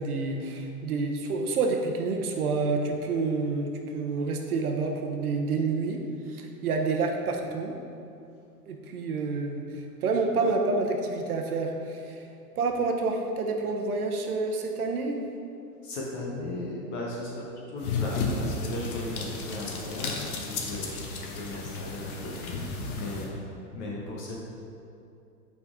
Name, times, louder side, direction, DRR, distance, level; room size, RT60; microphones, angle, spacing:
voice 1, 0.0-6.0 6.3-7.7 8.7-12.2 12.6-15.2, right 3 dB, 65° right, 3 dB, 0.9 m, -28 dB
voice 2, 15.8-23.4 23.7-24.4, left 2 dB, 20° left, -3 dB, 0.5 m, -37 dB
sound 1, 17.8-23.3, left 4 dB, 60° left, 1.0 m, -33 dB
5.5 x 4.2 x 4.8 m, 2.6 s
hypercardioid pair, 125°, 48 cm